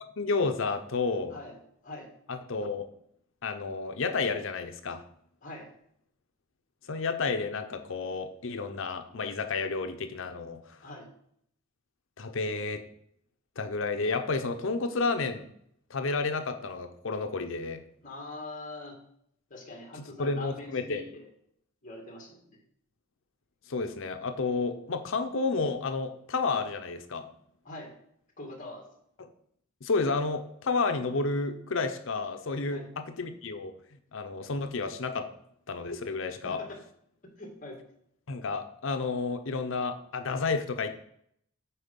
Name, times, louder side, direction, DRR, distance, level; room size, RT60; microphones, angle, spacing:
voice 1, 0.2-1.4 2.3-2.9 3.4-5.0 6.9-10.8 12.2-12.8 13.6-15.5 15.9-17.8 20.0-21.0 23.7-27.3 29.8-32.8 33.2-33.7 34.1-35.3 35.7-36.6 38.3-40.9, left 4 dB, 65° left, 7 dB, 0.7 m, -31 dB
voice 2, 5.4-5.7 10.8-11.1 18.0-19.0 19.5-21.3 21.8-22.4 27.6-28.0 28.4-28.8 32.7-32.9 36.4-36.8 37.4-37.8, left 2 dB, 40° left, 1 dB, 2.1 m, -43 dB
8.8 x 4.4 x 5.3 m, 0.69 s
head